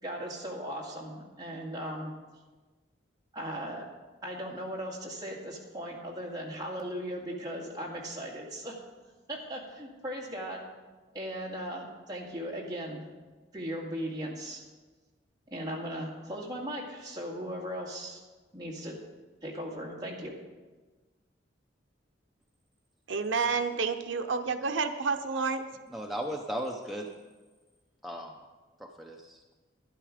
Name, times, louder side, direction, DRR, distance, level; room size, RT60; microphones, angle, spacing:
voice 1, 0.0-2.1 3.3-3.8 4.2-8.8 9.3-10.6 11.1-13.1 13.5-14.6 15.5-18.2 18.5-19.0 19.4-20.3, equal, 20° right, -3 dB, 2.1 m, -37 dB
voice 2, 23.1-25.6, right 4 dB, 80° right, 8 dB, 0.6 m, -29 dB
voice 3, 25.9-27.1 28.0-28.3 28.8-29.5, equal, ahead, 0 dB, 0.7 m, -36 dB
12.0 x 10.5 x 5.0 m, 1.3 s
head